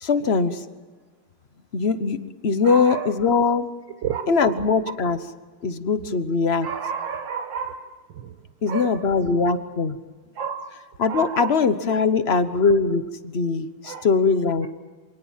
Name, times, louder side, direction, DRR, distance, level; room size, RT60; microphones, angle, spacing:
voice 1, 0.0-0.6 1.7-3.7 4.3-5.2 5.6-6.7 8.6-10.0 11.0-14.7, left 4 dB, 40° left, 11 dB, 1.1 m, -21 dB
voice 2, 2.6-3.1 4.0-4.6 6.6-7.9 8.7-9.0 10.4-10.7 11.1-11.5 13.8-14.1, right 7 dB, 70° right, 5 dB, 1.8 m, -30 dB
27.0 x 19.0 x 7.5 m, 1.4 s
omnidirectional pair, 2.2 m